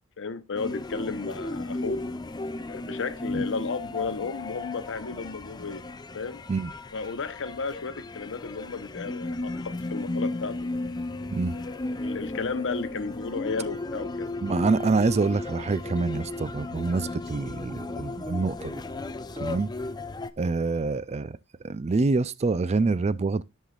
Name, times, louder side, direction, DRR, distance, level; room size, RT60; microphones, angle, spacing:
voice 1, 0.2-2.0 2.7-5.9 6.1-6.4 6.9-10.7 11.5-14.3, left 4 dB, 60° left, 0.9 m, -34 dB
sound 1, 0.5-20.3, left 2 dB, 20° left, 0.5 m, -35 dB
voice 2, 11.3-11.6 14.4-18.8 19.4-19.7 20.4-21.4 21.6-23.4, right 3 dB, 30° right, 0.4 m, -26 dB
13.5 x 5.6 x 2.4 m
head